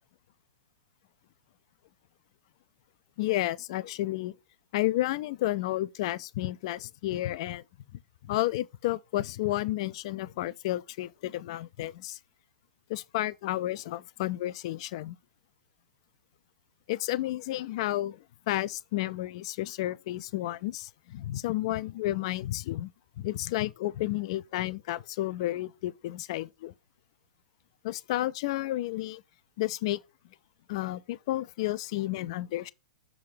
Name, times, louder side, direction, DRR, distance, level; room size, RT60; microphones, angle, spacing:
voice 1, 3.2-4.3 4.7-7.6 8.3-12.2 12.9-15.2 16.9-22.9 23.2-26.7 27.8-29.2 29.6-30.0 30.7-32.7, left 15 dB, 45° left, 0.4 m, -31 dB
6.3 x 3.5 x 5.1 m
figure-of-eight pair, 105°, 4 cm